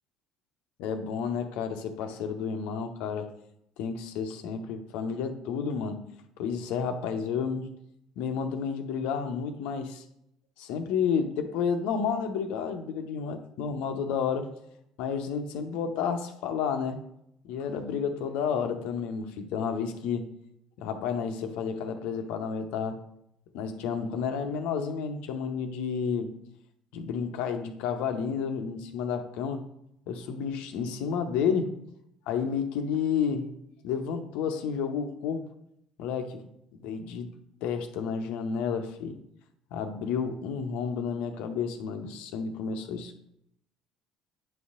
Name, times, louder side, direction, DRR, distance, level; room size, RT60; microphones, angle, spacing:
voice 1, 0.8-3.3 3.8-6.0 6.4-7.7 8.2-10.0 10.6-14.5 15.0-17.0 17.4-20.3 20.8-23.0 23.5-26.3 26.9-29.6 30.1-31.7 32.3-33.5 33.8-35.4 36.0-36.5 36.8-37.3 37.6-39.2 39.7-43.3, left 6 dB, 65° left, 7 dB, 0.7 m, -31 dB
9.2 x 5.4 x 2.5 m, 0.77 s
figure-of-eight pair, 55°, 2 cm